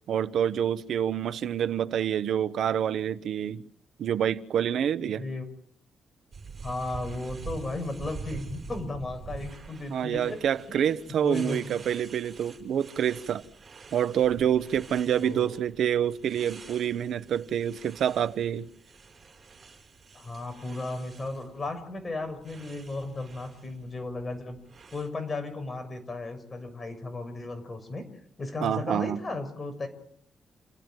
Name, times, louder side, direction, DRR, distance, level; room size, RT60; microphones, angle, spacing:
voice 1, 0.1-3.6 4.0-5.2 9.9-13.4 13.9-18.7 28.6-29.2, right 9 dB, 70° right, 1.2 m, -27 dB
voice 2, 5.1-5.4 6.6-10.4 10.7-11.7 15.2-15.5 20.1-24.6 24.9-28.1 28.4-29.9, left 2 dB, 25° left, 6.8 m, -35 dB
sound 1, 6.3-25.1, right 5 dB, 40° right, 6.5 m, -46 dB
30.0 x 16.0 x 9.3 m
cardioid pair, 115°, 0 cm